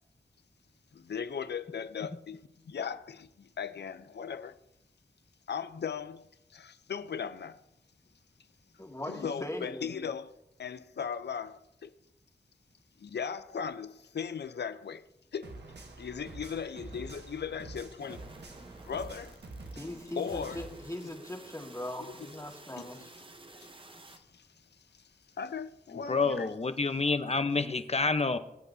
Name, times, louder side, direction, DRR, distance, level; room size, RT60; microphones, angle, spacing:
voice 1, 0.9-4.6 5.5-6.2 6.5-7.6 9.1-10.3 10.6-11.9 13.0-15.0 15.3-15.6 16.0-18.2 18.8-19.4 20.2-20.7 22.1-22.3 22.7-22.9 24.1-24.5 24.9-25.1 25.4-26.5, left 7 dB, 85° left, 0.5 m, -38 dB
voice 2, 8.8-9.9 19.8-23.1, left 1 dB, 20° left, 1.7 m, -40 dB
sound 1, 15.4-20.8, right 2 dB, 90° right, 1.2 m, -47 dB
sound 2, 18.0-24.2, right 2 dB, 30° right, 0.9 m, -52 dB
voice 3, 26.1-28.4, left 4 dB, 40° left, 0.8 m, -28 dB
20.5 x 8.4 x 2.7 m
wide cardioid pair, 60°, 17 cm